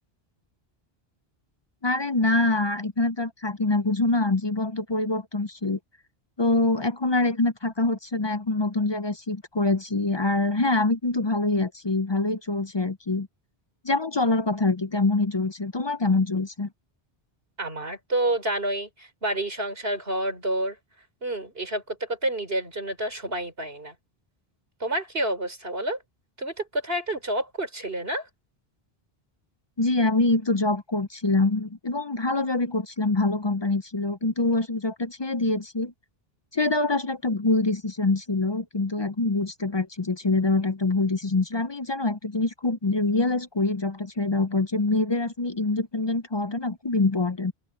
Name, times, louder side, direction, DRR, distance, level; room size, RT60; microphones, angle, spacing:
voice 1, 1.8-5.8 6.4-13.3 13.8-16.7 29.8-35.9 36.5-47.5, left 2 dB, 30° left, 0.6 m, -25 dB
voice 2, 17.6-20.8 21.2-23.9 24.8-26.0 26.4-28.3, right 1 dB, 70° right, 5.6 m, -29 dB
open air
omnidirectional pair, 1.0 m